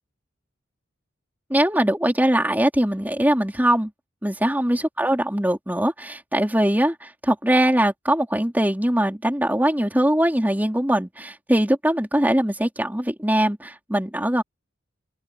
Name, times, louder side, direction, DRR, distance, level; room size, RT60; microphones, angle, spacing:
voice 1, 1.5-3.9 4.2-14.4, right 1 dB, 10° right, 3.5 m, -21 dB
open air
head